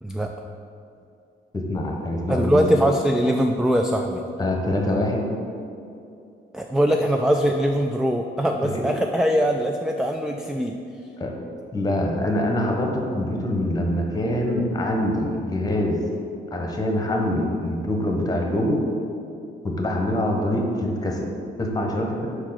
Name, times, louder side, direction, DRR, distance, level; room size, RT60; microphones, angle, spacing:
voice 1, 1.5-2.6 4.4-5.3 8.6-8.8 11.2-11.3 11.7-16.0 16.5-18.8 19.6-21.2 21.6-22.3, left 1 dB, 20° left, 1 dB, 1.1 m, -24 dB
voice 2, 2.3-4.2 6.5-10.8, equal, 5° right, 3 dB, 0.3 m, -22 dB
4.7 x 4.6 x 5.8 m, 2.6 s
cardioid pair, 90°, 20 cm